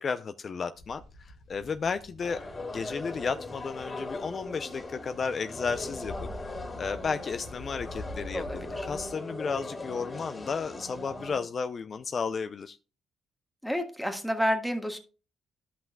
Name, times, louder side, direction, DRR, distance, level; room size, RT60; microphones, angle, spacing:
voice 1, 0.0-2.4 2.7-8.4 8.8-12.8, left 5 dB, 45° left, 10 dB, 0.5 m, -33 dB
sound 1, 0.7-9.1, left 1 dB, 65° left, 1.8 m, -46 dB
sound 2, 2.2-11.4, left 2 dB, 30° left, 2.7 m, -39 dB
voice 2, 8.3-8.9 13.6-15.0, equal, ahead, 4 dB, 1.5 m, -30 dB
13.5 x 5.7 x 2.3 m, 0.34 s
cardioid pair, 90°, 0 cm